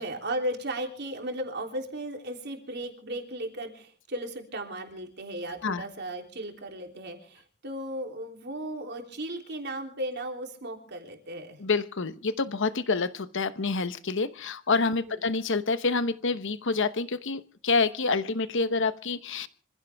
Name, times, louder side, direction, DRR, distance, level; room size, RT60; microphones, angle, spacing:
voice 1, 0.0-11.6 14.9-15.2, right 1 dB, 50° right, 3 dB, 3.3 m, -36 dB
voice 2, 11.6-19.5, left 4 dB, 60° left, 13 dB, 1.0 m, -27 dB
25.5 x 15.5 x 3.5 m, 0.43 s
head